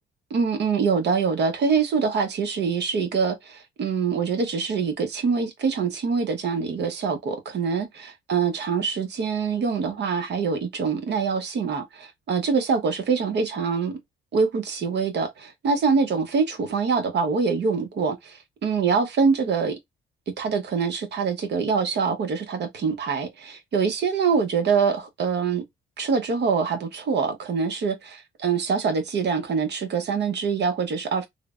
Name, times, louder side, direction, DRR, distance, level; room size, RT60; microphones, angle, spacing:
voice 1, 0.3-14.0 14.3-19.8 20.3-25.6 26.0-31.3, right 5 dB, 60° right, 0.8 m, -24 dB
3.2 x 2.0 x 2.3 m
cardioid pair, 90°, 20 cm